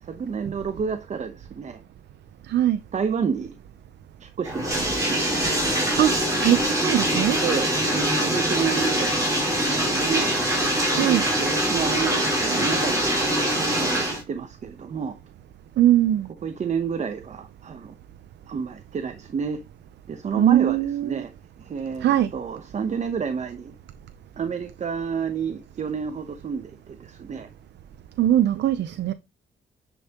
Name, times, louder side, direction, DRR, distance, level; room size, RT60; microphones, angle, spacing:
voice 1, 0.0-1.8 2.9-3.6 4.2-5.3 7.4-10.3 11.0-15.2 16.4-17.9 18.5-19.6 20.1-21.3 21.6-23.7 24.4-27.5, right 6 dB, 40° right, 1.0 m, -30 dB
voice 2, 2.5-2.8 6.0-7.4 10.9-11.2 15.8-16.3 20.4-21.2 22.0-22.3 28.2-29.1, right 12 dB, 80° right, 0.6 m, -20 dB
Bathtub (filling or washing), 4.4-14.2, equal, 15° right, 4.6 m, -23 dB
10.0 x 5.4 x 3.0 m
cardioid pair, 135°, 18 cm